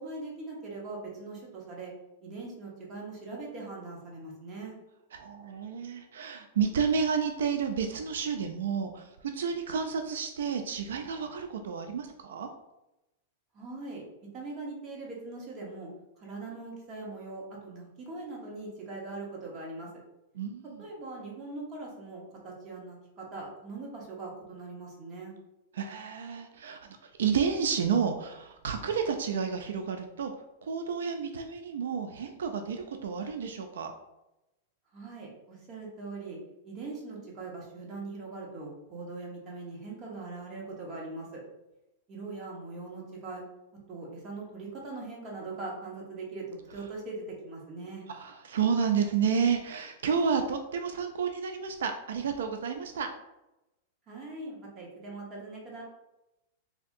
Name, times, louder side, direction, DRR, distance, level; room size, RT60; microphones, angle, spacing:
voice 1, 0.0-1.9 2.2-4.7 13.5-14.0 14.3-15.9 16.2-19.9 20.8-25.3 34.9-36.4 36.6-41.4 42.1-43.4 43.9-48.0 54.1-55.8, right 3 dB, 30° right, -2 dB, 0.9 m, -41 dB
voice 2, 5.1-12.5 20.4-20.8 25.7-30.3 30.6-33.9 48.1-53.1, right 6 dB, 85° right, 6 dB, 0.3 m, -31 dB
3.4 x 2.7 x 2.5 m, 0.94 s
supercardioid pair, 150°, 0 cm